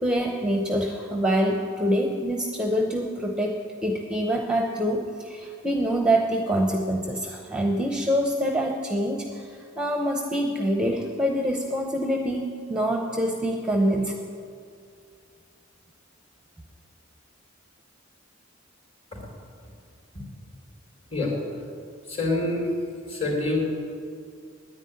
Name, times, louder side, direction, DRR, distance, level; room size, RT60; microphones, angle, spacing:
voice 1, 0.0-14.2, equal, 5° right, 2 dB, 0.7 m, -25 dB
voice 2, 22.1-22.7 23.1-23.6, left 2 dB, 30° left, -1 dB, 3.6 m, -25 dB
9.9 x 9.7 x 9.8 m, 2.4 s
head